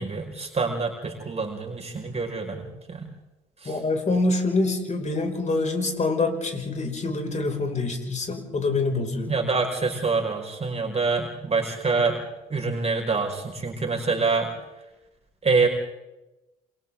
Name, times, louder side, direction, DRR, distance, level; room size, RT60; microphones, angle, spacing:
voice 1, 0.0-3.1 3.6-3.8 9.3-12.2 12.5-14.5 15.4-15.7, right 4 dB, 30° right, 2 dB, 5.3 m, -26 dB
voice 2, 3.7-9.4, left 3 dB, 35° left, 3 dB, 5.7 m, -25 dB
28.0 x 26.0 x 3.8 m, 0.97 s
hypercardioid pair, 50°, 20 cm